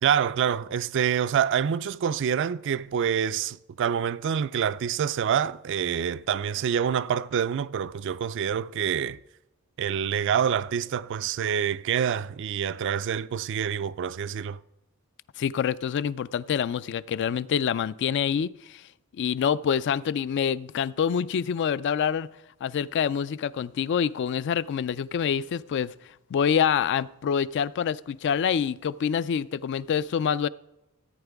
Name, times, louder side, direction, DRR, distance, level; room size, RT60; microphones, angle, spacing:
voice 1, 0.0-9.2 9.8-14.6, right 8 dB, 60° right, 0.3 m, -26 dB
voice 2, 15.4-18.8 19.1-22.3 22.6-25.9 26.3-30.5, left 7 dB, 55° left, 0.3 m, -26 dB
14.5 x 8.8 x 3.5 m
head